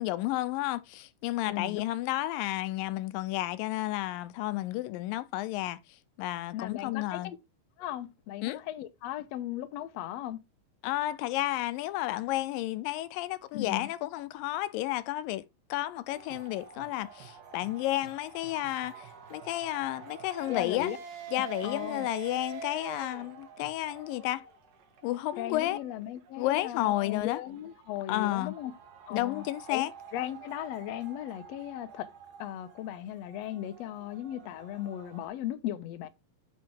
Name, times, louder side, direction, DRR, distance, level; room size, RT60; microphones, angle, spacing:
voice 1, 0.0-5.8 6.2-7.3 8.4-8.6 10.8-15.4 15.7-20.9 21.3-24.5 25.0-25.8 26.4-27.4 28.1-28.6 29.1-29.9, left 16 dB, 90° left, 2.4 m, -32 dB
voice 2, 1.5-1.8 6.5-7.4 7.8-10.4 13.5-13.9 20.5-21.0 21.6-22.1 25.4-28.7 29.1-29.4 29.7-29.8 30.1-32.1 32.4-36.1, left 12 dB, 70° left, 1.6 m, -37 dB
sound 1, 16.1-35.3, right 6 dB, 75° right, 3.3 m, -47 dB
8.8 x 5.5 x 3.5 m
omnidirectional pair, 4.0 m